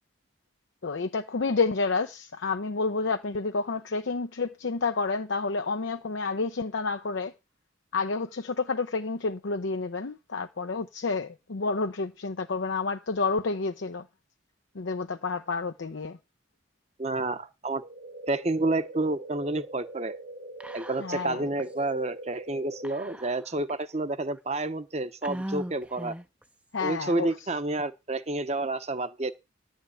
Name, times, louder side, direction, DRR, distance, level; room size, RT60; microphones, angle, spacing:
voice 1, 0.8-7.3 7.9-14.0 14.8-16.2 21.0-21.4 26.7-27.3, left 4 dB, 70° left, 0.6 m, -29 dB
voice 2, 17.0-17.8 18.3-20.1 20.7-26.2 26.8-29.3, right 2 dB, 35° right, 0.9 m, -29 dB
sound 1, 17.8-22.8, right 1 dB, 80° right, 2.5 m, -43 dB
Whispering, 20.6-21.3 21.6-21.7 22.8-23.7 24.3-24.4 25.2-26.4, right 1 dB, 5° right, 0.6 m, -38 dB
11.0 x 5.2 x 8.4 m
head